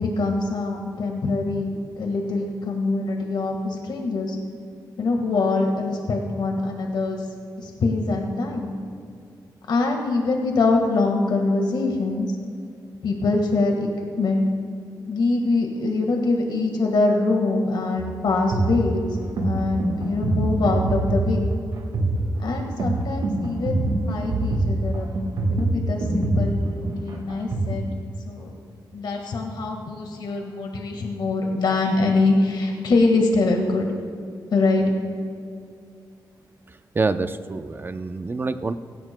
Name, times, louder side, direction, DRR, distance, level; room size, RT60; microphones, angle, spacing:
voice 1, 0.0-4.4 5.0-7.2 7.6-8.7 9.7-12.3 13.0-13.9 14.2-14.5 15.1-19.0 19.4-21.5 22.4-25.1 25.5-26.7 27.0-27.8 28.3-28.5 28.9-33.9 34.5-34.9, left 3 dB, 75° left, 2 dB, 1.6 m, -23 dB
sound 1, 18.0-27.7, right 2 dB, 80° right, 1.7 m, -25 dB
voice 2, 36.7-38.7, right 3 dB, 25° right, 10 dB, 0.6 m, -27 dB
17.0 x 16.5 x 2.2 m, 2.4 s
wide cardioid pair, 110°, 8 cm